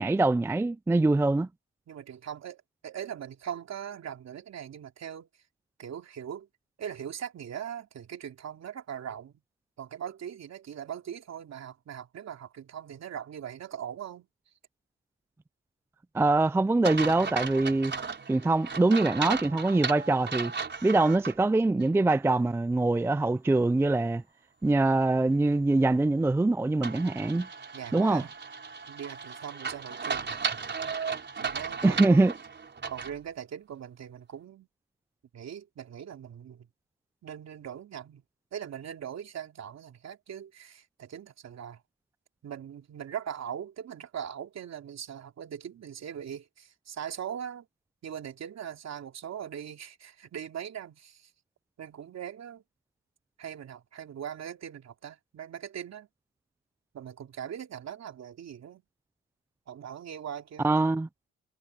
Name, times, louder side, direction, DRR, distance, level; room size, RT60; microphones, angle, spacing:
voice 1, 0.0-1.5 16.1-17.9 18.3-20.5 20.8-24.2 24.6-27.5 27.9-28.2 31.8-32.3 60.6-61.1, right 2 dB, 10° right, 0.4 m, -24 dB
voice 2, 1.9-5.3 5.8-6.5 6.8-9.4 9.8-14.3 27.7-28.3 28.9-30.3 31.4-32.2 32.9-34.7 35.3-36.7 37.2-38.2 38.5-41.8 42.4-47.7 48.0-51.3 51.8-52.6 53.4-56.1 56.9-58.8 59.7-60.7, right 9 dB, 60° right, 3.2 m, -40 dB
sound 1, 16.8-21.4 21.8-21.9 26.8-33.2, right 5 dB, 35° right, 4.8 m, -35 dB
cardioid pair, 90°, 30 cm